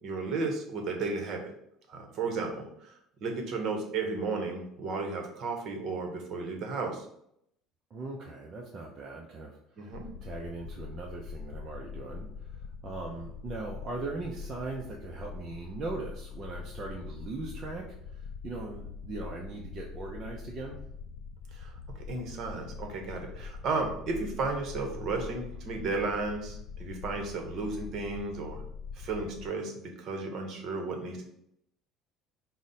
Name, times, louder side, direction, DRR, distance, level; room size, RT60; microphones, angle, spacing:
voice 1, 0.0-1.5 1.9-7.0 9.8-10.1 21.5-21.7 22.1-28.6 28.9-31.2, right 3 dB, 45° right, 3 dB, 0.9 m, -34 dB
voice 2, 7.9-10.0 10.2-17.8 18.1-20.8, right 3 dB, 25° right, -1 dB, 0.5 m, -40 dB
sound 1, 9.9-29.5, left 5 dB, 80° left, 0.3 m, -43 dB
4.9 x 2.1 x 4.1 m, 0.74 s
cardioid pair, 165°, 0 cm